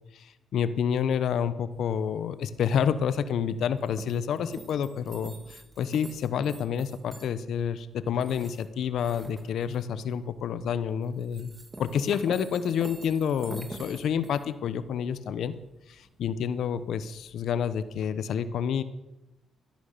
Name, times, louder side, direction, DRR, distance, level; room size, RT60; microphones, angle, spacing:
voice 1, 0.1-11.5 11.8-15.5 15.9-18.8, left 8 dB, 70° left, 13 dB, 0.9 m, -29 dB
sound 1, 1.7-18.1, right 2 dB, 20° right, 2.0 m, -48 dB
14.0 x 11.0 x 6.8 m, 0.96 s
cardioid pair, 90°, 0 cm